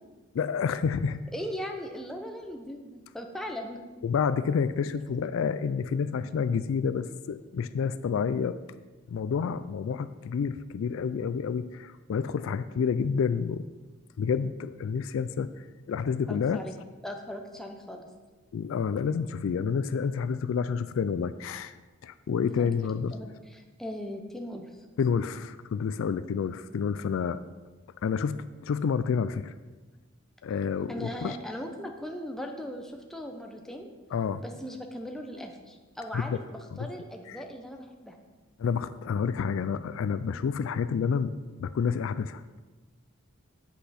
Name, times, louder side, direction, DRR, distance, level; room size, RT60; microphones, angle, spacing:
voice 1, 0.3-1.2 4.0-8.6 9.1-13.7 14.2-15.5 15.9-16.6 18.5-21.8 22.0-23.2 25.0-27.4 28.0-29.5 30.4-31.4 34.1-34.4 36.1-36.4 37.3-37.4 38.6-42.6, left 6 dB, 65° left, 13 dB, 0.3 m, -29 dB
voice 2, 1.3-3.8 16.3-16.7 17.0-18.1 22.5-22.8 23.1-24.7 30.9-33.9 34.4-38.2, equal, ahead, 3 dB, 0.7 m, -39 dB
8.1 x 8.1 x 4.2 m, 1.3 s
head